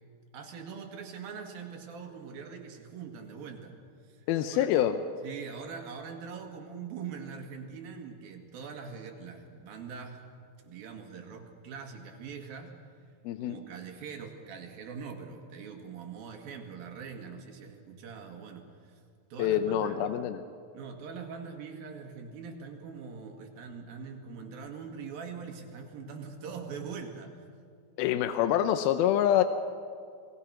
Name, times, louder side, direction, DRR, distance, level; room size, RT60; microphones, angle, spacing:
voice 1, 0.3-3.8 4.1-4.7 5.2-10.2 10.6-12.8 13.4-19.0 19.3-20.1 20.7-27.3, right 6 dB, 80° right, 3 dB, 3.8 m, -43 dB
voice 2, 4.3-5.0 13.2-13.6 19.4-20.4 28.0-29.4, left 11 dB, 90° left, 9 dB, 2.6 m, -26 dB
27.5 x 19.0 x 5.9 m, 2.3 s
omnidirectional pair, 4.2 m